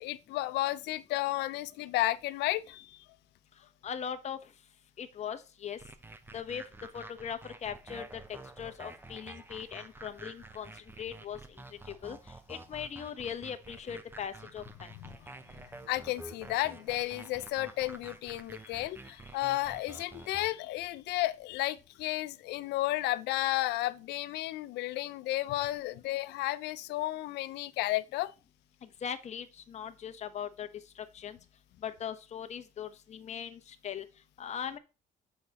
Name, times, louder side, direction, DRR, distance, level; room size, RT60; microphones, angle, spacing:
voice 1, 0.0-3.0 15.0-15.1 15.9-28.3, left 16 dB, 85° left, 0.6 m, -33 dB
voice 2, 3.8-4.4 5.0-5.8 6.3-6.6 6.9-8.2 8.6-10.7 11.0-11.4 12.0-12.2 12.5-14.9 29.0-30.7 31.0-31.4 31.8-34.0 34.4-34.8, left 8 dB, 40° left, 1.1 m, -39 dB
sound 1, 5.8-20.5, right 2 dB, 10° right, 0.9 m, -49 dB
7.1 x 5.0 x 4.2 m
cardioid pair, 110°, 17 cm